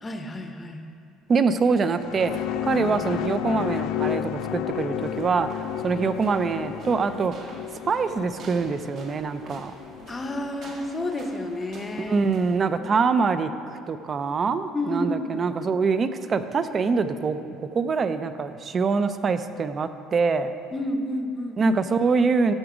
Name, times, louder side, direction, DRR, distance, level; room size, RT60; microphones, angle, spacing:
voice 1, 0.0-0.9 10.1-12.2 12.8-13.0 14.7-15.4 20.7-21.8, left 1 dB, 20° left, 5 dB, 0.7 m, -30 dB
voice 2, 1.3-7.3 7.8-9.7 12.0-13.5 13.9-17.4 17.7-20.5 21.6-22.5, right 4 dB, 30° right, 11 dB, 0.4 m, -24 dB
sound 1, 1.7-10.4, left 11 dB, 65° left, 0.3 m, -32 dB
sound 2, 5.0-12.6, right 3 dB, 45° right, 1.0 m, -47 dB
14.0 x 4.9 x 4.9 m, 2.4 s
cardioid pair, 145°, 0 cm